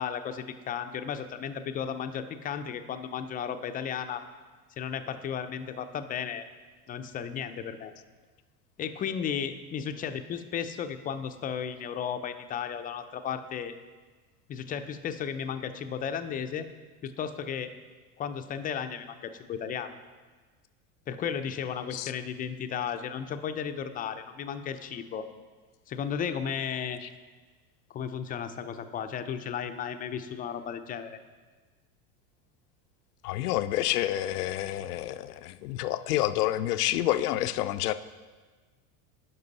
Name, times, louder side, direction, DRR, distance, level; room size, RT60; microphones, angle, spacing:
voice 1, 0.0-4.2 4.8-6.4 6.9-7.9 8.8-13.7 14.5-16.7 17.0-17.7 18.2-19.9 21.1-25.3 25.9-27.0 27.9-31.2, left 8 dB, 20° left, 9 dB, 0.4 m, -34 dB
voice 2, 33.2-37.9, left 14 dB, 85° left, 13 dB, 0.5 m, -28 dB
10.5 x 5.5 x 4.0 m, 1.4 s
hypercardioid pair, 105°, 45 cm